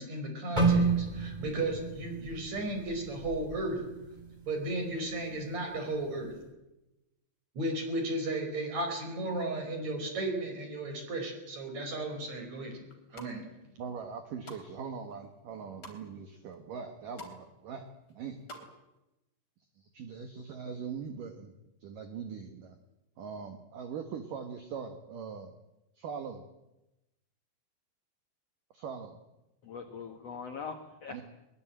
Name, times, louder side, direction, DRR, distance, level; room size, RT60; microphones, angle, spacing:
voice 1, 0.0-3.8 4.5-6.3 7.5-12.8 13.1-13.4, right 2 dB, 35° right, 4 dB, 6.2 m, -34 dB
sound 1, 0.6-4.6 4.9-5.2 5.9-6.2, right 4 dB, 10° right, 3.4 m, -31 dB
sound 2, 12.9-13.3 13.9-14.6 15.1-16.0 16.5-16.6 16.8-17.4 17.7-18.7 19.0-19.1, left 1 dB, 25° left, 3.8 m, -48 dB
voice 2, 13.8-18.4 19.8-21.5 21.8-22.8 23.2-25.5 26.0-26.4 28.7-29.2 31.1-31.2, right 6 dB, 60° right, 7 dB, 2.5 m, -41 dB
voice 3, 29.6-31.2, left 5 dB, 85° left, 6 dB, 1.4 m, -41 dB
22.0 x 21.5 x 8.9 m, 0.95 s
omnidirectional pair, 5.3 m